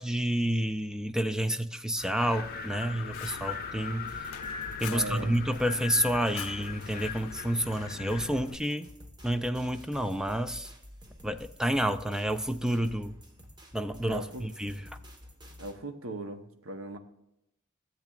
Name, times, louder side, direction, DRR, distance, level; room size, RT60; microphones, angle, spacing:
voice 1, 0.0-4.1 4.8-8.9 9.2-10.7 11.2-13.2 13.7-14.9, right 1 dB, 5° right, 10 dB, 0.4 m, -29 dB
Wind, 2.0-8.4, left 6 dB, 45° left, 0.7 m, -41 dB
Fire, 2.4-8.6, left 7 dB, 90° left, 0.5 m, -44 dB
sound 1, 4.1-15.8, equal, 20° right, 1.3 m, -50 dB
voice 2, 4.9-5.3 14.1-14.4 15.6-17.0, right 2 dB, 70° right, 7 dB, 1.0 m, -38 dB
13.5 x 7.5 x 2.4 m, 0.82 s
head